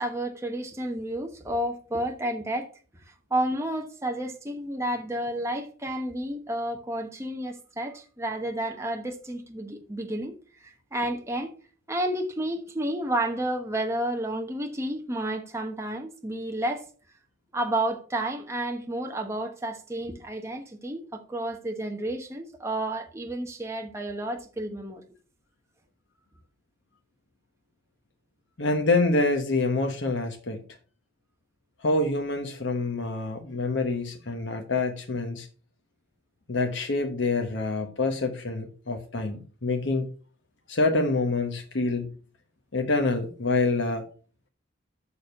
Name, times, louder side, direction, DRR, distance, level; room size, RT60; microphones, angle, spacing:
voice 1, 0.0-2.7 3.1-11.5 11.9-16.9 17.5-25.0, right 1 dB, 15° right, 1.1 m, -31 dB
voice 2, 28.6-30.6 31.8-35.5 36.5-40.1 40.7-42.1 42.7-44.0, left 2 dB, 65° left, 1.1 m, -26 dB
7.1 x 6.3 x 5.4 m
head